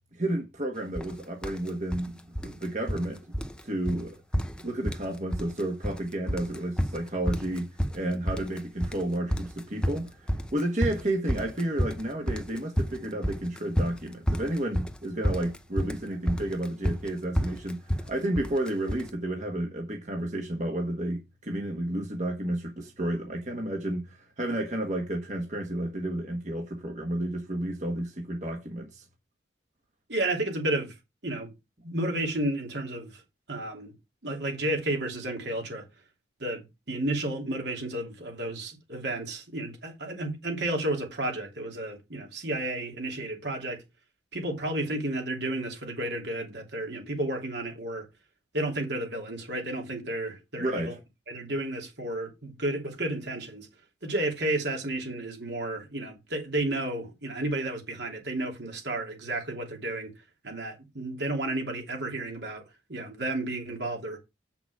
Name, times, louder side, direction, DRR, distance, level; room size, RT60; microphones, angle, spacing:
voice 1, 0.1-3.2 3.6-4.2 4.6-29.0 50.6-51.0, right 1 dB, 40° right, 1.4 m, -31 dB
sound 1, 1.0-1.1 1.4-2.1 2.4-3.1 3.3-3.6 3.9-4.0 4.3-5.1 5.3-6.0 6.3-19.1, equal, 5° left, 0.6 m, -30 dB
voice 2, 30.1-31.0 31.2-31.5 31.8-33.2 33.5-33.9 34.2-35.9 36.4-43.8 44.3-48.1 48.5-50.9 51.3-53.7 54.0-60.1 60.4-62.6 62.9-64.2, right 1 dB, 75° right, 2.9 m, -32 dB
8.1 x 5.9 x 4.8 m
head